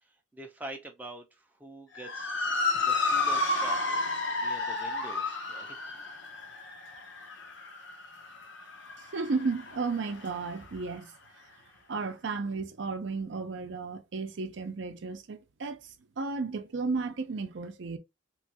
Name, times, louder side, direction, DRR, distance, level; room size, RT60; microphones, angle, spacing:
voice 1, 0.0-2.3 2.8-4.0 4.4-6.0, right 2 dB, 10° right, 0.5 m, -45 dB
Motor vehicle (road) / Siren, 2.0-10.5, left 3 dB, 65° left, 0.7 m, -32 dB
voice 2, 9.1-11.1 11.9-18.0, right 4 dB, 60° right, 0.5 m, -33 dB
3.0 x 2.3 x 2.7 m
head